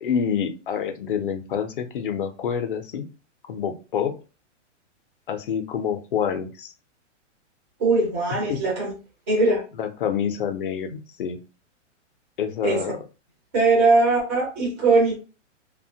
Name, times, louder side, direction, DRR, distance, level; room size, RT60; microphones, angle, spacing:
voice 1, 0.0-3.1 3.4-4.2 5.3-6.7 8.5-8.6 9.8-11.4 12.4-13.0, left 8 dB, 45° left, 7 dB, 0.4 m, -27 dB
voice 2, 7.8-8.9 9.3-9.6 12.6-12.8 13.5-15.1, right 3 dB, 15° right, -5 dB, 0.5 m, -20 dB
2.8 x 2.1 x 2.6 m, 0.33 s
hypercardioid pair, 170°, 37 cm